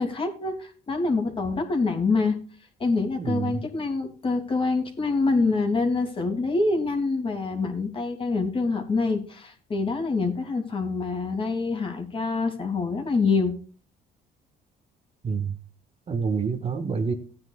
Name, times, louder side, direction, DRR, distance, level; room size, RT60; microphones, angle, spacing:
voice 1, 0.0-2.4 2.8-13.5, left 3 dB, 30° left, 3 dB, 2.9 m, -26 dB
voice 2, 3.2-3.6 15.2-15.5 16.1-17.1, right 5 dB, 35° right, 7 dB, 1.5 m, -27 dB
16.5 x 9.6 x 2.4 m, 0.38 s
cardioid pair, 110°, 17 cm